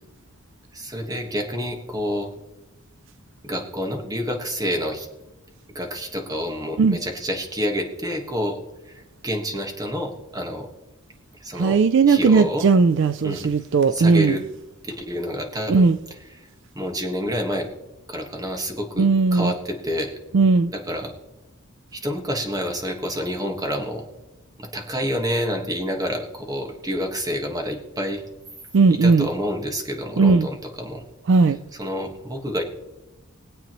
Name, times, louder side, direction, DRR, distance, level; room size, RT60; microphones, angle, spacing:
voice 1, 0.7-2.3 3.4-5.1 5.7-10.7 11.4-11.8 12.1-12.7 13.2-13.5 13.9-14.4 14.8-15.9 16.4-16.5 16.7-17.7 18.1-20.1 20.7-21.1 21.9-24.0 24.6-28.2 29.0-31.0 31.8-32.6, equal, 15° right, 1.4 m, -28 dB
voice 2, 11.5-14.4 15.7-16.0 19.0-19.5 20.3-20.7 28.7-29.3 30.2-30.5 31.3-31.6, right 4 dB, 60° right, 0.4 m, -17 dB
22.5 x 8.2 x 3.0 m
head